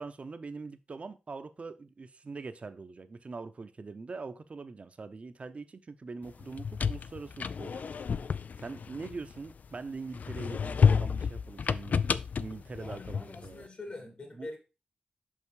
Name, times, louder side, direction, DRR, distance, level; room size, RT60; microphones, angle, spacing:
voice 1, 0.0-7.8 8.6-12.0 12.4-13.7 14.4-14.5, right 4 dB, 50° right, 0.7 m, -43 dB
sound 1, 6.4-9.7 10.1-13.5, left 6 dB, 70° left, 0.3 m, -30 dB
voice 2, 12.7-14.6, left 2 dB, 45° left, 2.4 m, -44 dB
5.7 x 5.5 x 4.7 m
wide cardioid pair, 90°, 3 cm